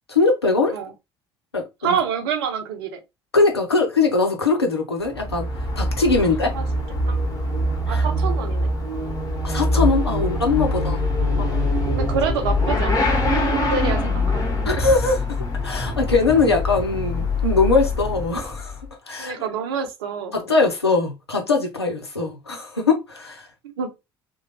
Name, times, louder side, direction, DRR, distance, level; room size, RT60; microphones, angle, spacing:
voice 1, 0.1-0.7 1.5-2.0 3.3-5.5 5.8-6.5 7.9-8.1 9.4-11.0 11.4-11.7 14.7-15.4 15.6-18.8 19.1-19.3 20.3-23.5, left 3 dB, 90° left, 0.6 m, -21 dB
voice 2, 1.8-3.0 6.2-6.6 7.1-7.2 7.9-8.7 10.2-10.3 11.9-14.6 19.2-20.3 23.6-23.9, right 6 dB, 70° right, 0.7 m, -27 dB
Motorcycle / Accelerating revving vroom, 5.0-18.9, left 1 dB, 30° left, 1.3 m, -23 dB
3.0 x 2.1 x 2.8 m
figure-of-eight pair, 55°, 13 cm